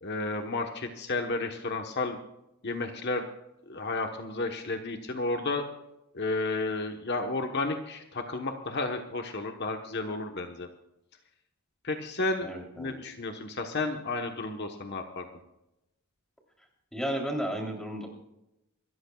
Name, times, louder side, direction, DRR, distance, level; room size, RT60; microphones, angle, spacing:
voice 1, 0.0-2.2 2.6-3.2 3.7-5.6 6.1-10.7 11.8-15.3, left 3 dB, 50° left, 4 dB, 1.2 m, -32 dB
voice 2, 12.4-12.9 16.9-18.1, equal, ahead, 0 dB, 3.3 m, -33 dB
26.5 x 14.0 x 2.4 m, 0.90 s
head